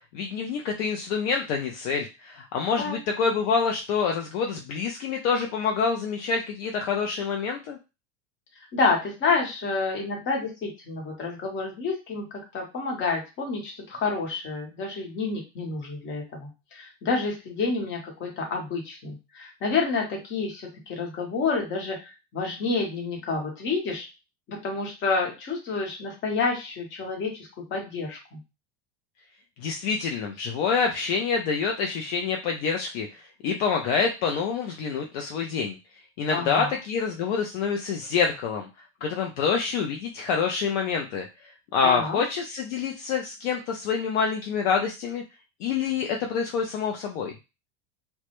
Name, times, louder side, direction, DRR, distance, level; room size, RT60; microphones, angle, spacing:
voice 1, 0.1-7.8 29.6-35.8 36.2-38.7 39.0-45.2 45.6-47.3, left 5 dB, 65° left, 2 dB, 0.5 m, -27 dB
voice 2, 8.7-24.1 24.5-28.4 36.3-36.7 41.8-42.2, left 4 dB, 35° left, 0 dB, 1.0 m, -29 dB
2.1 x 2.1 x 2.9 m, 0.27 s
supercardioid pair, 140°, 34 cm